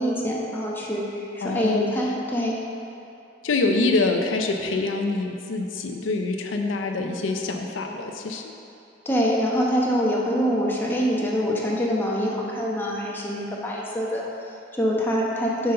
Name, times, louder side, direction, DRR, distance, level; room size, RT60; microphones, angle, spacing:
voice 1, 0.0-2.6 9.0-15.7, equal, 10° left, -4 dB, 0.9 m, -25 dB
voice 2, 1.4-1.9 3.4-8.5, left 3 dB, 85° left, 3 dB, 0.5 m, -25 dB
7.6 x 4.0 x 5.5 m, 2.7 s
head